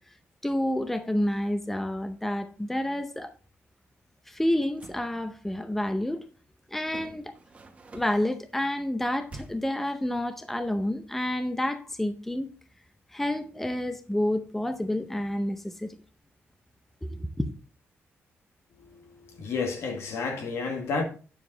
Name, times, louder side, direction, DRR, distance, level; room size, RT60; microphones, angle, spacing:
voice 1, 0.4-3.3 4.3-6.2 6.7-7.3 7.9-12.5 13.1-16.0 17.0-17.5, left 1 dB, 5° left, 0.7 m, -29 dB
sound 1, 4.6-5.1 6.9-8.3 9.3-9.8, right 2 dB, 30° right, 1.3 m, -46 dB
voice 2, 18.7-21.0, left 4 dB, 75° left, 2.0 m, -31 dB
9.5 x 7.1 x 3.9 m
wide cardioid pair, 150°, 5 cm